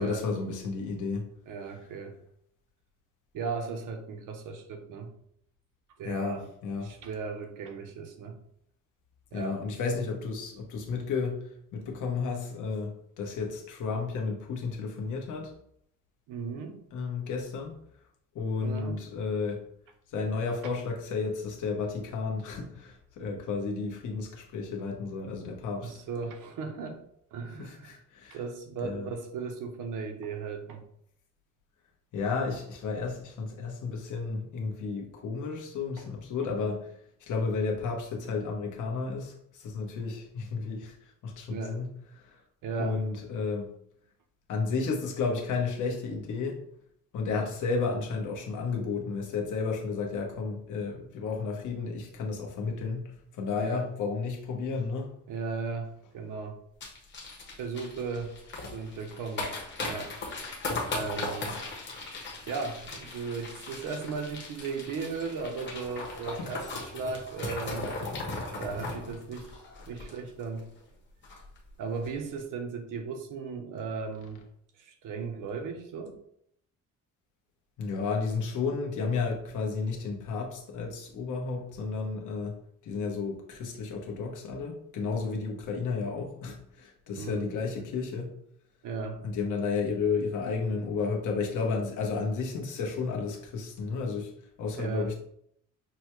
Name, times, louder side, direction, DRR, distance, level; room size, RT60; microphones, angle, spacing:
voice 1, 0.0-1.3 6.0-6.9 9.3-15.5 16.9-17.7 18.3-19.6 20.1-25.9 27.6-28.4 28.8-29.1 32.1-36.9 37.2-41.9 42.2-42.4 42.8-43.7 44.5-46.6 47.1-55.1 66.4-66.5 77.8-88.3 89.2-94.3 94.6-95.2, left 4 dB, 70° left, 0 dB, 1.0 m, -32 dB
voice 2, 1.5-2.2 3.3-5.1 6.0-6.4 6.8-8.4 9.3-9.6 16.3-16.8 18.6-19.0 25.8-27.0 27.3-28.0 28.3-30.8 36.0-36.1 41.5-41.8 42.6-43.0 53.6-53.9 55.3-56.6 57.6-58.3 58.7-59.5 59.8-60.1 60.9-61.6 62.5-67.9 68.5-69.6 69.9-70.7 71.8-74.4 74.8-76.2 87.2-87.5 87.7-87.8 88.8-89.2 94.8-95.1, right 5 dB, 75° right, 5 dB, 0.8 m, -36 dB
sound 1, 56.8-70.6 70.9-71.0 71.2-71.6 71.9-72.1, left 2 dB, 35° left, 1.0 m, -38 dB
6.0 x 2.2 x 3.0 m, 0.70 s
cardioid pair, 150°, 31 cm